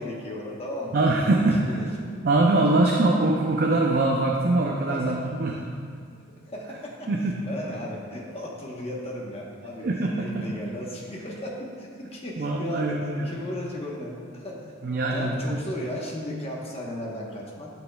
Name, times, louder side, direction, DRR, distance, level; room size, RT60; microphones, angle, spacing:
voice 1, 0.0-1.0 1.6-2.3 4.9-5.3 6.5-7.1 7.4-9.9 10.2-14.7 15.1-17.7, left 1 dB, 30° left, -3 dB, 1.1 m, -35 dB
voice 2, 0.9-1.8 2.2-5.7 7.1-7.3 9.8-10.4 12.4-13.3 14.8-15.6, right 2 dB, 50° right, 0 dB, 0.5 m, -23 dB
11.5 x 6.0 x 2.3 m, 2.2 s
head